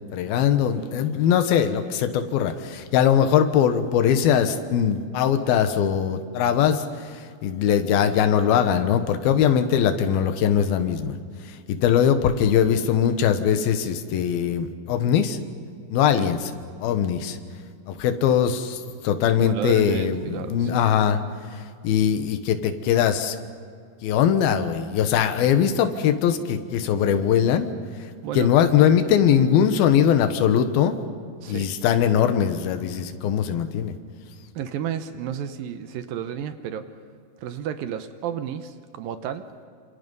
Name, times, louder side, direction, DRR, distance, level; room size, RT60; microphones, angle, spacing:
voice 1, 0.1-6.8 7.1-11.2 11.7-15.4 15.9-16.4 16.8-17.4 17.9-21.2 21.8-23.4 24.0-27.7 28.4-31.0 31.5-33.9, left 8 dB, 75° left, 8 dB, 3.1 m, -21 dB
voice 2, 19.4-20.9 28.2-28.5 31.4-31.7 34.6-36.9 37.4-39.5, right 9 dB, 75° right, 10 dB, 2.5 m, -32 dB
27.5 x 26.5 x 5.5 m, 2.2 s
omnidirectional pair, 4.4 m